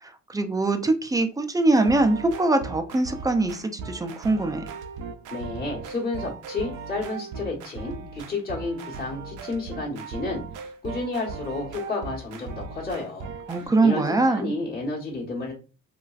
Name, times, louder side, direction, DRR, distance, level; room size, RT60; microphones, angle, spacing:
voice 1, 0.3-4.6 13.5-14.5, right 2 dB, 10° right, 6 dB, 0.4 m, -22 dB
sound 1, 1.7-13.7, right 5 dB, 85° right, 0.5 m, -38 dB
voice 2, 5.3-15.5, left 3 dB, 30° left, -5 dB, 1.2 m, -31 dB
2.9 x 2.5 x 2.4 m, 0.35 s
cardioid pair, 90°, 30 cm